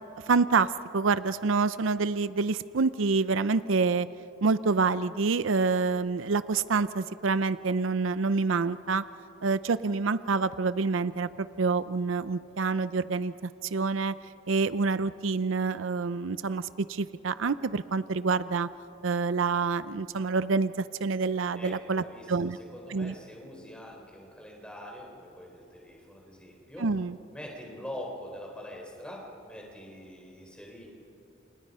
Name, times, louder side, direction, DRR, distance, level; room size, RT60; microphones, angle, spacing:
voice 1, 0.3-4.1 4.4-9.0 9.4-13.3 13.6-14.1 14.5-18.7 19.0-22.6 22.9-23.1 26.8-27.2, right 4 dB, 75° right, 15 dB, 0.5 m, -27 dB
voice 2, 21.5-26.9 27.3-30.9, equal, 5° left, -1 dB, 4.3 m, -44 dB
29.0 x 29.0 x 5.6 m, 2.9 s
head